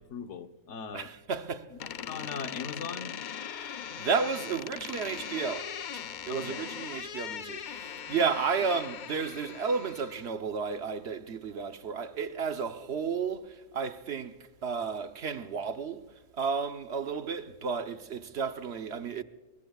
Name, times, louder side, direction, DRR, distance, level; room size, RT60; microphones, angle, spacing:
voice 1, 0.0-1.1 2.0-3.1 6.3-6.6, left 6 dB, 70° left, 1.3 m, -39 dB
voice 2, 0.9-1.7 3.5-16.1 16.3-19.2, right 5 dB, 60° right, 1.1 m, -33 dB
Door, 1.8-10.3, left 8 dB, 55° left, 0.6 m, -40 dB
27.0 x 20.5 x 2.4 m
omnidirectional pair, 1.3 m